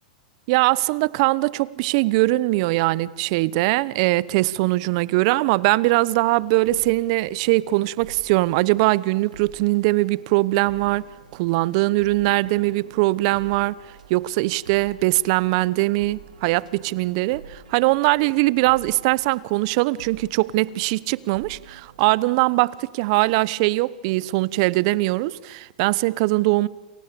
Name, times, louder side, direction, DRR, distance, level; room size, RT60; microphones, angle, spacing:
voice 1, 0.5-11.0 11.3-13.8 14.1-26.7, right 20 dB, 50° right, 1.0 m, -21 dB
sound 1, 6.1-22.6, right 6 dB, 85° right, 3.6 m, -47 dB
29.0 x 28.5 x 7.0 m
hypercardioid pair, 110°, 4 cm